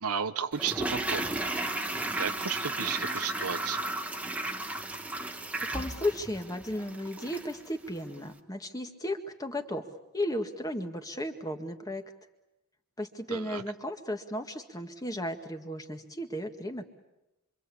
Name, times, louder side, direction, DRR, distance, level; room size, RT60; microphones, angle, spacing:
voice 1, 0.0-1.3 1.8-3.9 13.3-13.6, right 7 dB, 85° right, 10 dB, 1.0 m, -34 dB
Toilet flush, 0.5-7.6 7.9-8.0, right 1 dB, 5° right, 1.4 m, -34 dB
voice 2, 5.7-9.9 10.1-12.0 13.0-16.8, left 1 dB, 15° left, 6 dB, 1.8 m, -34 dB
26.5 x 26.5 x 8.6 m, 0.95 s
head